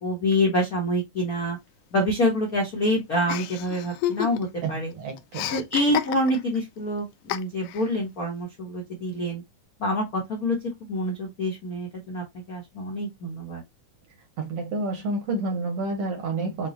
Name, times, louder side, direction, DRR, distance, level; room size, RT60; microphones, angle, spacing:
voice 1, 0.0-1.6 1.9-4.9 5.5-9.4 9.8-13.6, left 1 dB, 70° left, 0.8 m, -26 dB
Chuckle chortle, 3.3-4.7 4.9-6.6 7.3-7.9, left 13 dB, 85° left, 2.1 m, -30 dB
voice 2, 4.6-5.6 14.4-16.7, right 2 dB, 65° right, 1.6 m, -29 dB
6.3 x 2.1 x 2.7 m
omnidirectional pair, 3.6 m